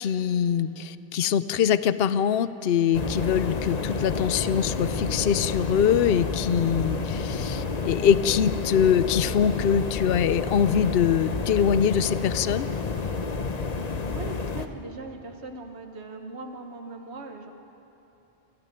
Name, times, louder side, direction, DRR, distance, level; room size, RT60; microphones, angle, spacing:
voice 1, 0.0-12.7, left 8 dB, 65° left, 14 dB, 0.8 m, -23 dB
sound 1, 2.9-14.7, left 4 dB, 40° left, 1.0 m, -30 dB
voice 2, 14.0-17.5, right 3 dB, 70° right, 3 dB, 1.4 m, -40 dB
28.0 x 12.5 x 9.1 m, 2.9 s
omnidirectional pair, 1.2 m